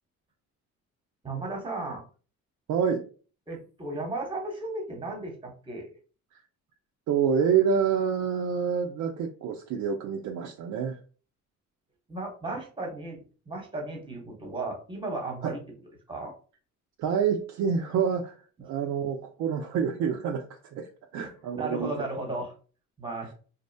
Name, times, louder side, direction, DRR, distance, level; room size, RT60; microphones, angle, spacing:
voice 1, 1.2-2.0 3.5-5.9 12.1-13.2 13.5-15.6 16.1-16.3 21.2-21.3 21.5-22.5 23.0-23.3, right 2 dB, 15° right, 1 dB, 1.0 m, -35 dB
voice 2, 2.7-3.0 7.1-11.0 15.4-15.5 17.0-20.9 21.1-21.9, right 7 dB, 75° right, 2 dB, 0.5 m, -27 dB
2.6 x 2.1 x 2.6 m, 0.38 s
cardioid pair, 90°, 30 cm